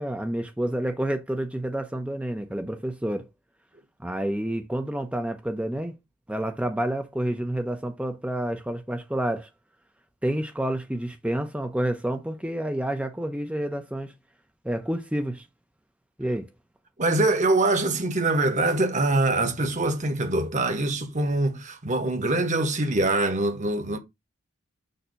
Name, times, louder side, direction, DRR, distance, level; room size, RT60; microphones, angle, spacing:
voice 1, 0.0-3.3 4.0-5.9 6.3-9.5 10.2-14.1 14.6-15.4 16.2-16.5, right 1 dB, 5° right, 0.6 m, -29 dB
voice 2, 17.0-24.0, right 2 dB, 35° right, 1.1 m, -24 dB
6.6 x 2.8 x 5.6 m
head